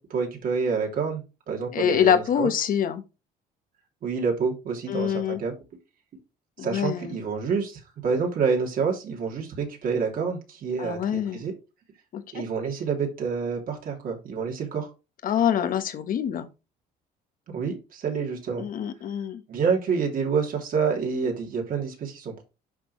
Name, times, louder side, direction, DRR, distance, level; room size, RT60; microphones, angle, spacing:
voice 1, 0.0-2.5 4.0-5.5 6.6-11.5 12.3-14.9 17.5-18.7 19.5-22.4, right 5 dB, 55° right, 2.9 m, -28 dB
voice 2, 1.7-3.0 4.9-5.4 6.6-7.2 10.8-11.4 12.1-12.4 15.2-16.5 18.6-19.4, left 9 dB, 55° left, 1.3 m, -25 dB
11.0 x 3.8 x 3.2 m
cardioid pair, 110°, 17 cm